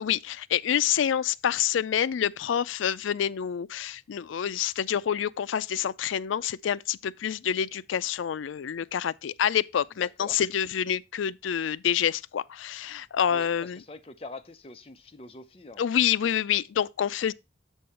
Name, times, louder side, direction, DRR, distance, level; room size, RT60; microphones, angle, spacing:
voice 1, 0.0-13.8 15.8-17.3, left 9 dB, 90° left, 0.4 m, -27 dB
voice 2, 10.0-10.4 13.3-16.0, left 2 dB, 30° left, 0.7 m, -45 dB
7.7 x 5.5 x 4.2 m
head